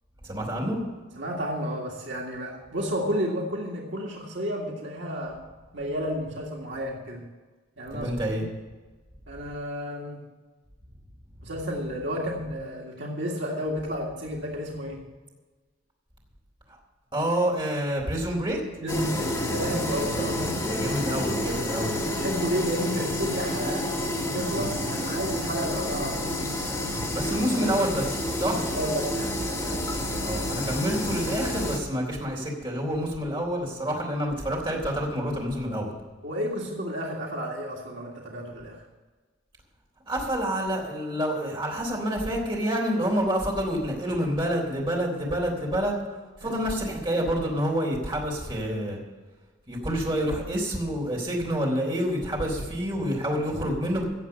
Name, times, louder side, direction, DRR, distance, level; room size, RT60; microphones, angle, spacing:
voice 1, 0.2-0.8 7.9-8.4 16.7-16.8 17.1-18.6 20.1-20.2 20.7-22.1 26.9-28.6 30.2-36.0 40.1-46.0 46.4-49.0 49.7-54.1, equal, 25° right, -1 dB, 3.5 m, -28 dB
voice 2, 1.2-5.4 5.7-7.2 7.8-8.4 9.3-10.2 11.4-15.0 18.8-20.4 22.2-24.0 24.2-26.4 28.4-29.8 36.2-38.8 46.4-46.6, equal, 65° right, -1 dB, 2.0 m, -32 dB
sound 1, 18.9-31.8, left 1 dB, 20° left, 2.2 m, -29 dB
16.5 x 7.4 x 7.0 m, 1.3 s
head